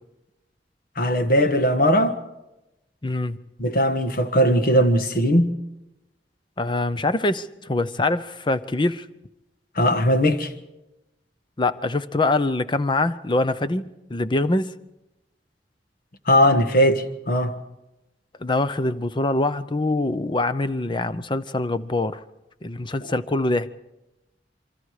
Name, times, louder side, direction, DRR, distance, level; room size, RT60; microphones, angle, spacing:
voice 1, 1.0-2.2 3.6-5.5 9.8-10.5 16.3-17.6, equal, 55° left, 1.5 m, -19 dB
voice 2, 3.0-3.4 6.6-9.1 11.6-14.7 18.4-22.2 22.6-23.7, left 2 dB, 25° left, 0.7 m, -24 dB
27.0 x 24.0 x 4.9 m
head